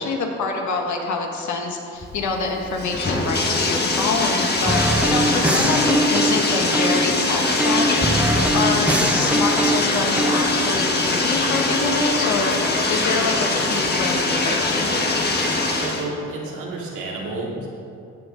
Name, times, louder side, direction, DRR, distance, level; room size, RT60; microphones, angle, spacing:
voice 1, 0.0-14.7, left 3 dB, 70° left, 2 dB, 1.6 m, -26 dB
Bathtub (filling or washing), 2.0-16.1, left 2 dB, 35° left, 1.5 m, -22 dB
sound 1, 4.7-7.2 7.6-10.4, right 1 dB, 5° right, 0.9 m, -22 dB
voice 2, 15.6-17.7, right 2 dB, 80° right, -3 dB, 2.5 m, -31 dB
16.5 x 6.5 x 3.9 m, 2.5 s
cardioid pair, 90°, 30 cm